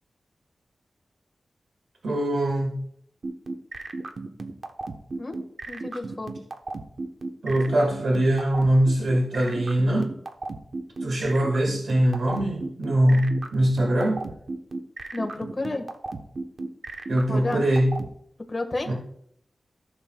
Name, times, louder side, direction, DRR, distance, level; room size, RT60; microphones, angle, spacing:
voice 1, 2.0-2.8 7.4-10.2 11.0-14.2 17.1-18.0 18.9-19.0, right 1 dB, 85° right, 0 dB, 1.7 m, -22 dB
sound 1, 3.2-18.1, right 3 dB, 55° right, 0.9 m, -34 dB
voice 2, 5.7-6.3 15.1-15.8 17.3-17.6 18.5-18.9, left 2 dB, 30° left, 3 dB, 1.5 m, -31 dB
15.0 x 7.0 x 2.3 m, 0.68 s
wide cardioid pair, 110°, 0 cm